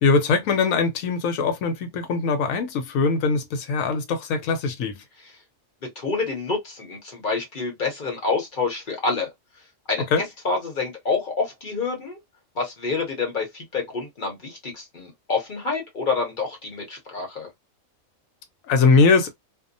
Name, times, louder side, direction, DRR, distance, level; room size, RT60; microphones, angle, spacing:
voice 1, 0.0-5.0 10.1-10.2 18.7-19.3, left 4 dB, 75° left, 1.0 m, -21 dB
voice 2, 5.8-9.3 9.9-10.0 10.4-12.2 12.5-17.5, left 4 dB, 40° left, 0.9 m, -27 dB
2.7 x 2.1 x 2.5 m
omnidirectional pair, 1.5 m